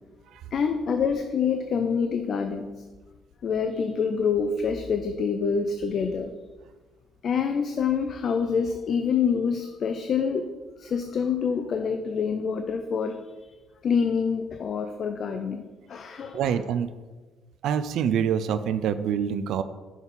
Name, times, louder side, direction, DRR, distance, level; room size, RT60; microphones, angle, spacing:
voice 1, 0.5-2.7 3.4-6.3 7.2-10.5 10.8-13.2 13.8-16.6, left 6 dB, 50° left, 7 dB, 0.4 m, -26 dB
voice 2, 16.3-16.9 17.6-19.6, right 8 dB, 75° right, 13 dB, 0.4 m, -25 dB
6.1 x 4.0 x 5.4 m, 1.3 s
cardioid pair, 110°, 0 cm